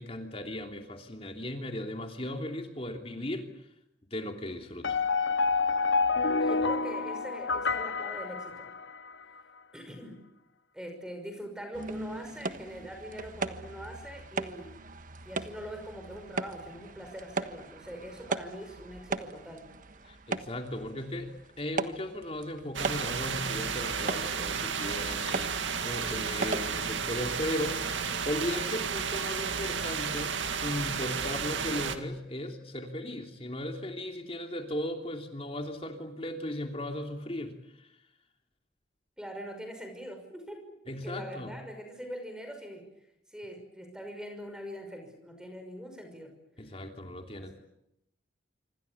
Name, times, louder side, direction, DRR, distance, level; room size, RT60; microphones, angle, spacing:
voice 1, 0.0-3.7 4.1-5.0 6.6-6.7 20.0-38.0 40.9-41.5 46.6-47.5, left 1 dB, 30° left, 4 dB, 3.0 m, -37 dB
sound 1, 4.8-9.1, left 4 dB, 85° left, 1.1 m, -28 dB
voice 2, 6.4-8.7 9.7-10.2 10.7-14.8 15.3-19.6 26.0-26.3 28.0-28.3 39.2-40.8 41.0-42.9 43.3-46.3 47.3-47.5, equal, 5° right, 5 dB, 5.8 m, -43 dB
sound 2, 11.7-27.1, right 3 dB, 45° right, 1.4 m, -38 dB
sound 3, 22.7-32.0, right 6 dB, 90° right, 2.3 m, -32 dB
26.5 x 25.5 x 8.5 m, 0.83 s
head